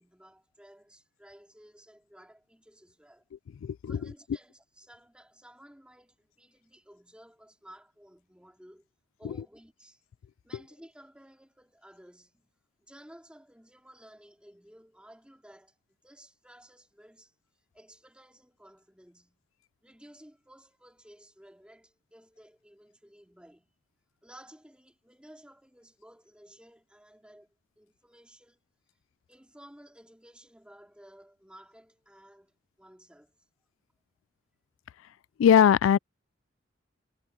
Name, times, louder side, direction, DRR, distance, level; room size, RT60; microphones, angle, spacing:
voice 1, 0.0-3.2 3.9-8.9 9.2-10.0 10.4-12.5 12.8-17.3 17.7-19.4 19.8-23.8 24.2-28.6 29.3-33.4, equal, 5° right, 3.0 m, -55 dB
voice 2, 3.6-4.0 35.4-36.0, left 8 dB, 85° left, 0.3 m, -20 dB
head